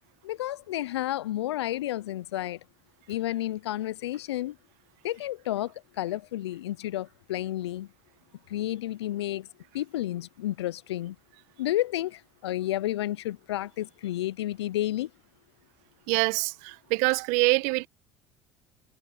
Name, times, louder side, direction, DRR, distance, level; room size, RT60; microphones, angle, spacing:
voice 1, 0.2-2.6 3.1-4.6 5.0-7.9 8.5-9.5 9.7-11.2 11.6-15.1, left 14 dB, 90° left, 0.4 m, -31 dB
voice 2, 16.1-17.9, right 25 dB, 70° right, 1.2 m, -25 dB
hypercardioid pair, 70°, 13 cm